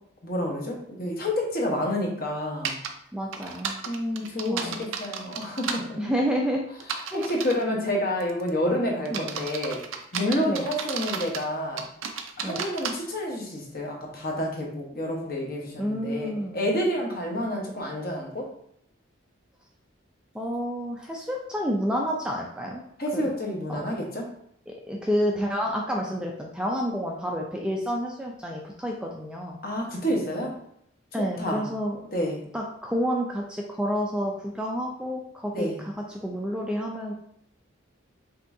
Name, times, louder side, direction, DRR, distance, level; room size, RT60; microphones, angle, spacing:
voice 1, 0.2-2.8 3.9-6.0 7.1-9.8 10.1-11.8 12.4-18.5 23.0-24.2 29.6-30.5 31.4-31.6 32.1-32.4 35.5-35.8, left 1 dB, 50° left, -1 dB, 1.1 m, -29 dB
sound 1, 2.6-2.9 3.3-5.8 6.8-7.6 8.2-8.5 9.0-11.5 11.8-12.9, right 6 dB, 90° right, 0.5 m, -33 dB
voice 2, 3.1-3.8 4.5-4.8 6.0-6.6 7.1-7.3 9.1-9.2 10.4-10.6 12.4-12.6 15.8-16.7 20.3-22.8 23.1-23.3 23.7-23.8 24.7-29.6 31.1-32.0 32.5-37.1, equal, 5° right, -1 dB, 0.4 m, -29 dB
5.3 x 3.6 x 2.7 m, 0.70 s
head